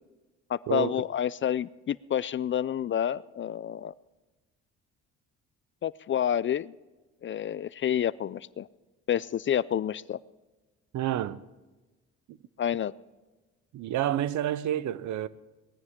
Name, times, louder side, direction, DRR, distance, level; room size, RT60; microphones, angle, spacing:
voice 1, 0.5-3.9 5.8-6.7 7.2-8.7 9.1-10.2 12.6-12.9, left 10 dB, 40° left, 0.4 m, -29 dB
voice 2, 10.9-11.4 13.7-15.3, right 12 dB, 75° right, 0.7 m, -29 dB
19.5 x 14.5 x 3.7 m
cardioid pair, 90°, 30 cm